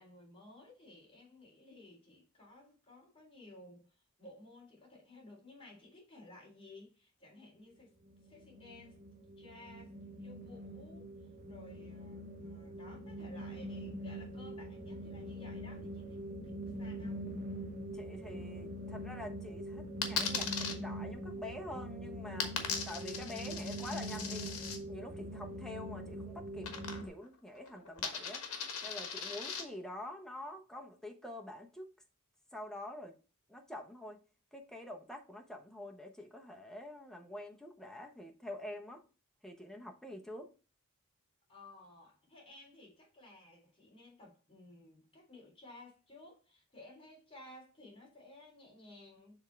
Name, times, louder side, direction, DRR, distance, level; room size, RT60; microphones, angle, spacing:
voice 1, 0.0-7.9 8.3-9.0 9.4-9.9 10.2-16.2 16.4-17.2 41.5-49.4, left 2 dB, 25° left, 3.7 m, -56 dB
sound 1, 8.1-27.1, right 1 dB, 40° right, 1.1 m, -43 dB
voice 2, 17.9-22.6 22.9-24.6 24.9-26.7 27.0-28.4 28.8-31.9 32.5-33.1 33.5-34.2 34.5-39.0 39.4-40.5, left 1 dB, ahead, 0.8 m, -46 dB
Coin (dropping), 20.0-20.7 22.4-24.8 26.6-27.3 27.6-29.6, left 6 dB, 70° left, 1.3 m, -38 dB
7.0 x 3.6 x 4.4 m
head